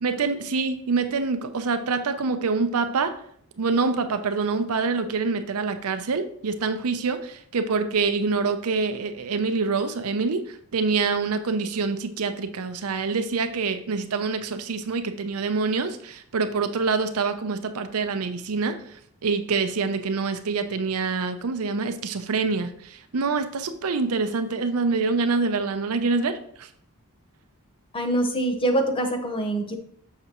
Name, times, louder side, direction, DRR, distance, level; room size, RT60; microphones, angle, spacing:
voice 1, 0.0-3.2 3.6-26.7, right 4 dB, 75° right, 9 dB, 0.6 m, -26 dB
voice 2, 27.9-29.8, right 1 dB, 25° left, 5 dB, 0.7 m, -24 dB
6.6 x 5.9 x 2.9 m, 0.64 s
head